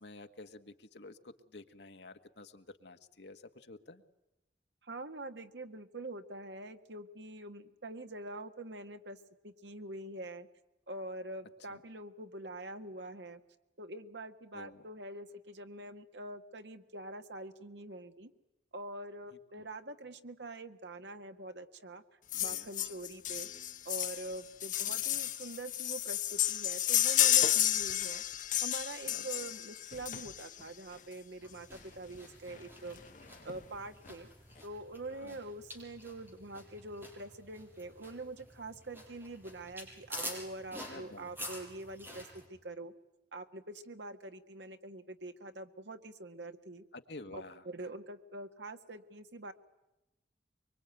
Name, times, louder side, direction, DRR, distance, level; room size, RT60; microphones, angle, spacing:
voice 1, 0.0-4.0 11.7-11.8 14.5-14.8 19.3-19.4 22.3-22.7 24.9-25.0 29.1-29.5 35.1-35.4 40.9-41.5 46.9-47.6, left 2 dB, 75° left, 7 dB, 1.6 m, -51 dB
voice 2, 4.8-10.5 10.9-13.4 13.8-18.3 18.7-22.0 22.4-23.5 23.8-28.2 28.6-33.0 33.4-34.3 34.6-42.9 43.3-46.8 47.3-49.5, right 2 dB, 85° right, 8 dB, 1.7 m, -45 dB
sound 1, 22.3-30.6 31.7-31.8 32.1-32.2 32.5-32.6 33.0-33.6 34.1-34.2, left 12 dB, 45° left, 0.9 m, -32 dB
sound 2, 31.4-42.5, equal, 10° right, 6.3 m, -48 dB
24.0 x 24.0 x 9.1 m, 0.95 s
head